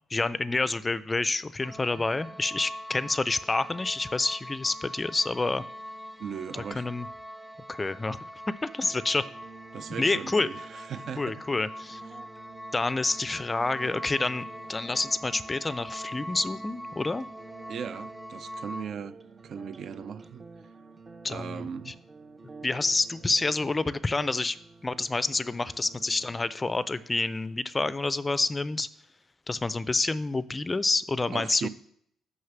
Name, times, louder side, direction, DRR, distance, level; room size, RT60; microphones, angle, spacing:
voice 1, 0.1-5.7 6.7-7.1 7.7-8.2 8.5-9.2 10.0-10.5 11.2-12.0 12.7-17.3 21.2-21.9 22.6-24.6 24.8-28.9 29.5-31.7, left 3 dB, 20° left, 0.4 m, -28 dB
sound 1, 1.6-18.9, equal, 5° right, 1.1 m, -42 dB
voice 2, 6.2-6.9 9.7-11.4 17.7-20.4 21.3-22.0 31.3-31.7, right 7 dB, 60° right, 0.4 m, -38 dB
sound 2, 8.8-27.8, right 4 dB, 30° right, 0.8 m, -51 dB
6.4 x 5.5 x 5.9 m
cardioid pair, 90°, 0 cm